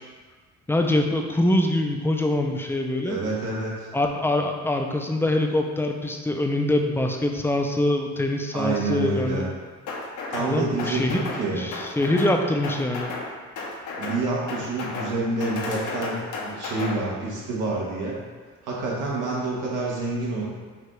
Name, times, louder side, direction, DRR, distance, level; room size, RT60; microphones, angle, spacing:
voice 1, 0.7-3.2 3.9-9.5 10.4-11.2 11.5-13.1, left 1 dB, 10° left, 2 dB, 0.3 m, -24 dB
voice 2, 3.1-3.8 8.5-9.4 10.3-11.7 14.0-18.2 18.6-20.4, right 2 dB, 85° right, -4 dB, 1.1 m, -28 dB
sound 1, 9.9-10.5 10.8-11.4 11.7-12.4 12.6-13.3 13.6-14.2 14.5-15.1 15.4-17.0, left 3 dB, 80° left, 0.7 m, -33 dB
4.6 x 2.4 x 3.1 m, 1.5 s
cardioid pair, 90°, 30 cm